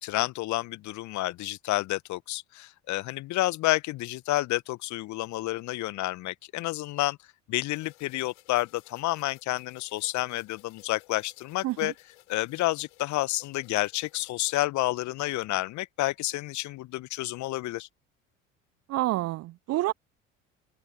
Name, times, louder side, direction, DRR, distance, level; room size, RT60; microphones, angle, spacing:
voice 1, 0.0-7.2 7.5-11.9 12.3-17.9, left 17 dB, 50° left, 1.3 m, -30 dB
sound 1, 7.7-14.5, left 22 dB, 65° left, 7.1 m, -58 dB
voice 2, 18.9-19.9, right 17 dB, 40° right, 0.7 m, -28 dB
open air
figure-of-eight pair, 60°, 38 cm